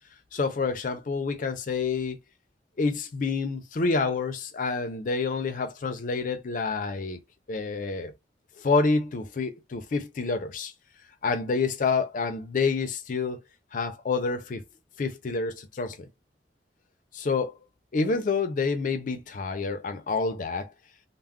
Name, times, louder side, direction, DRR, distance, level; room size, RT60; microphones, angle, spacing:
voice 1, 0.3-2.2 2.8-7.2 7.5-8.1 8.6-10.7 11.2-13.4 13.7-14.6 15.0-16.1 17.1-17.6 17.9-20.7, left 4 dB, 45° left, 0.4 m, -28 dB
2.2 x 2.0 x 3.5 m
head